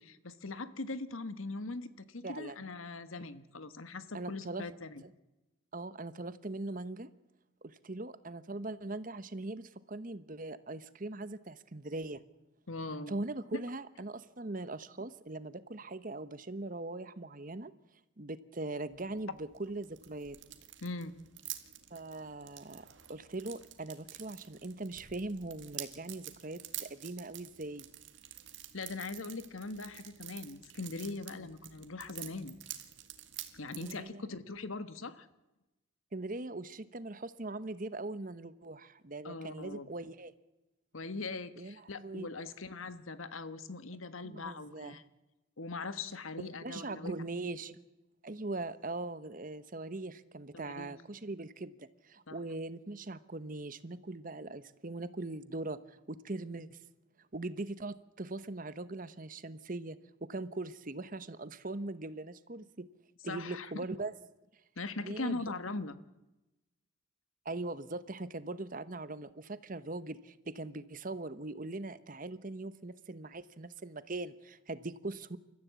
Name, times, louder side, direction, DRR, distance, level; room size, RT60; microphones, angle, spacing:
voice 1, 0.0-5.0 12.7-13.1 13.5-13.6 20.8-21.1 28.7-32.6 33.5-35.3 39.2-39.9 40.9-45.0 45.6-47.2 50.5-50.9 52.3-52.4 63.2-63.9 64.8-66.0, left 3 dB, 85° left, 12 dB, 1.4 m, -41 dB
voice 2, 2.2-2.6 4.1-4.6 5.0-5.1 5.7-7.1 7.6-12.2 13.1-17.7 18.2-20.4 21.9-27.9 33.7-34.3 36.1-40.3 41.6-42.3 44.2-45.0 46.4-47.8 48.2-56.8 57.3-62.9 63.2-64.1 65.0-65.4 67.4-75.4, right 2 dB, 40° right, 14 dB, 1.0 m, -41 dB
sound 1, 18.9-33.9, right 13 dB, 65° right, 2.0 m, -49 dB
29.0 x 14.0 x 8.3 m, 1.0 s
head